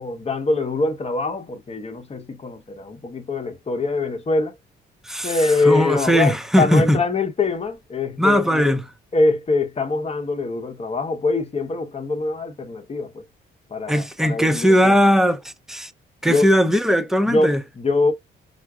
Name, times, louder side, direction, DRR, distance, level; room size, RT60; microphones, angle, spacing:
voice 1, 0.0-4.6 5.2-8.8 9.1-13.2 13.7-15.0 16.3-16.5 17.3-18.1, left 3 dB, 30° left, 0.9 m, -23 dB
voice 2, 5.0-7.0 8.2-8.8 13.9-15.9 16.2-17.6, equal, ahead, 0.6 m, -19 dB
5.7 x 2.1 x 2.3 m
cardioid pair, 90°, 20 cm